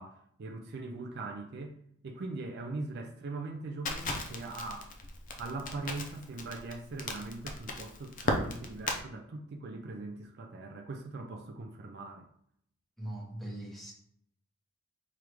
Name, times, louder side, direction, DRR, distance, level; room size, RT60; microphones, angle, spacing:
voice 1, 0.0-1.8 2.0-4.9 5.4-12.3, right 3 dB, 50° right, 0.4 m, -41 dB
Crackle, 3.9-9.0, left 2 dB, 40° left, 0.5 m, -36 dB
voice 2, 13.0-13.9, right 1 dB, ahead, 0.9 m, -40 dB
4.8 x 2.5 x 3.0 m
head